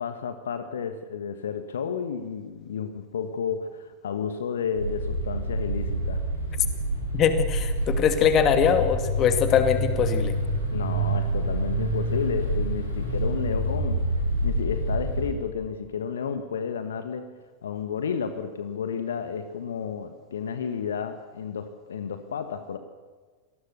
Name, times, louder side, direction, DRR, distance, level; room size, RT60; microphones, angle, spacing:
voice 1, 0.0-6.3 10.7-14.0 14.4-17.3 17.6-22.8, left 6 dB, 65° left, 9 dB, 1.5 m, -31 dB
sound 1, 4.8-15.3, right 1 dB, 85° left, 7.5 m, -27 dB
voice 2, 7.1-10.4, left 7 dB, 30° left, 9 dB, 2.3 m, -22 dB
26.5 x 19.0 x 6.9 m, 1.4 s
figure-of-eight pair, 90°, 0 cm